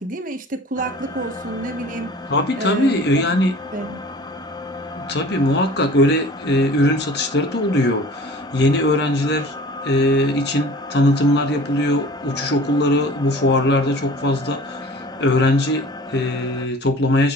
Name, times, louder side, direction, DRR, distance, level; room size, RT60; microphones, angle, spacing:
voice 1, 0.0-2.1 2.6-3.1 3.7-4.0, right 2 dB, 45° right, 1.4 m, -28 dB
sound 1, 0.8-16.7, left 2 dB, 20° left, 0.8 m, -34 dB
voice 2, 2.3-3.5 5.0-9.5 9.8-14.8 15.2-17.3, left 1 dB, 60° left, 1.6 m, -19 dB
9.9 x 7.2 x 3.3 m
head